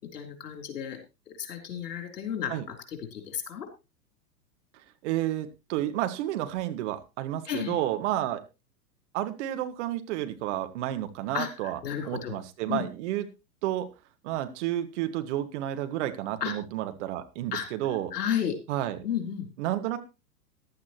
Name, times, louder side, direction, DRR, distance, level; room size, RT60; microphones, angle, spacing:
voice 1, 0.1-1.0 1.3-3.7 7.4-7.8 11.3-12.3 12.7-12.8 16.4-16.5 17.5-17.7 18.1-18.6 19.0-19.5, left 9 dB, 65° left, 5 dB, 4.0 m, -33 dB
voice 2, 5.0-8.4 9.1-11.8 12.0-13.3 13.6-13.9 14.2-18.1 18.7-19.0 19.6-20.0, right 13 dB, 45° right, 9 dB, 1.7 m, -31 dB
15.0 x 11.5 x 3.0 m, 0.27 s
figure-of-eight pair, 110°, 50 cm